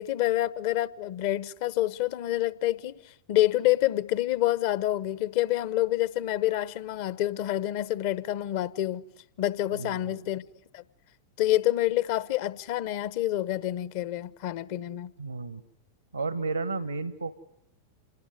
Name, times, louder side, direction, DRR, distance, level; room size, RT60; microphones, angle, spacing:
voice 1, 0.0-2.9 3.3-9.0 9.4-10.4 10.7-10.8 11.4-15.1, left 14 dB, 50° left, 0.9 m, -27 dB
voice 2, 9.7-10.2 15.2-15.6 16.1-17.3, right 3 dB, 80° right, 1.2 m, -32 dB
27.5 x 19.0 x 9.7 m
figure-of-eight pair, 90°, 0 cm